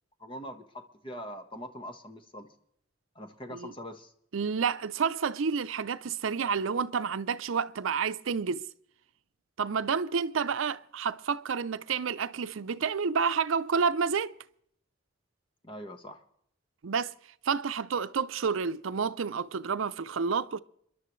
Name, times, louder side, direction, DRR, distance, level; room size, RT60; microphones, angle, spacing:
voice 1, 0.2-2.5 3.1-4.1 15.6-16.2, equal, 25° left, 1.2 m, -42 dB
voice 2, 4.3-8.7 9.6-14.3 16.8-17.1 17.4-20.6, right 6 dB, 80° right, 0.5 m, -29 dB
28.5 x 11.5 x 3.1 m
head